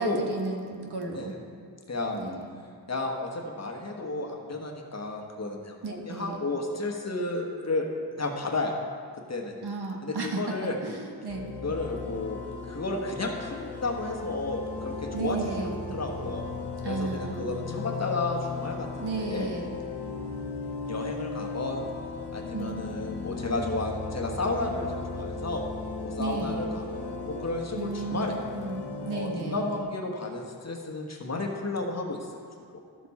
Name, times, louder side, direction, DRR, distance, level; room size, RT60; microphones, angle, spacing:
voice 1, 0.0-1.3 2.1-2.5 5.8-6.4 9.6-10.5 10.8-11.5 15.1-15.8 16.8-17.5 19.0-19.7 22.5-23.5 26.2-26.6 27.8-29.7, right 3 dB, 70° right, 1 dB, 1.4 m, -34 dB
voice 2, 1.9-2.2 2.9-7.9 8.1-8.7 9.3-9.5 10.0-10.8 11.6-12.4 12.7-16.4 16.8-19.5 20.8-21.8 22.3-25.6 26.0-28.4 29.1-32.3, left 2 dB, 40° left, 1 dB, 1.3 m, -32 dB
sound 1, 11.3-29.8, left 3 dB, 75° left, 1.2 m, -37 dB
12.0 x 6.9 x 4.2 m, 2.1 s
cardioid pair, 70°, 41 cm